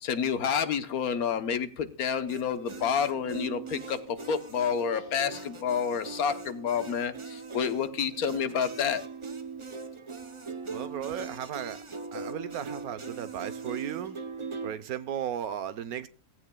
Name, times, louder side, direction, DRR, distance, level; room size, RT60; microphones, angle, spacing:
voice 1, 0.0-4.0 4.3-9.0, left 7 dB, 80° left, 10 dB, 1.5 m, -29 dB
sound 1, 2.3-14.8, right 4 dB, 30° right, 0.6 m, -40 dB
voice 2, 10.7-11.8 12.1-14.2 14.6-16.1, right 9 dB, 80° right, 13 dB, 1.3 m, -35 dB
16.0 x 15.5 x 2.3 m, 0.38 s
omnidirectional pair, 1.5 m